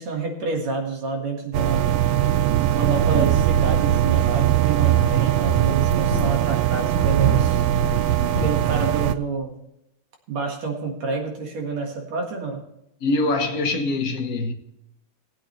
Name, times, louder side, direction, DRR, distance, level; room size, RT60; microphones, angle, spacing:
voice 1, 0.0-2.0 2.7-7.6 8.4-9.5 10.3-12.6, right 3 dB, 65° right, 3.0 m, -28 dB
sound 1, 1.5-9.1, right 12 dB, 85° right, 1.3 m, -20 dB
sound 2, 4.9-6.6 6.9-8.5, left 1 dB, 20° right, 6.0 m, -31 dB
voice 2, 13.0-14.5, left 2 dB, 85° left, 0.7 m, -23 dB
19.0 x 8.8 x 3.2 m
omnidirectional pair, 3.4 m